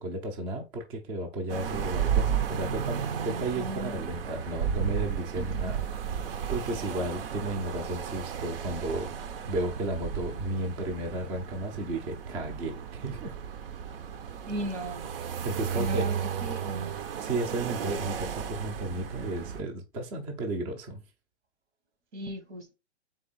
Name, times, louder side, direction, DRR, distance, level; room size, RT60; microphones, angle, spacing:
voice 1, 0.0-5.8 6.5-9.1 9.5-13.3 15.4-16.1 17.2-21.0, right 2 dB, 15° right, 0.5 m, -33 dB
sound 1, 1.5-19.6, right 8 dB, 55° right, 0.7 m, -33 dB
voice 2, 5.4-5.8 14.5-15.1 15.7-16.9 22.1-22.7, right 1 dB, 85° right, 1.5 m, -37 dB
3.7 x 3.4 x 4.0 m
hypercardioid pair, 140°, 34 cm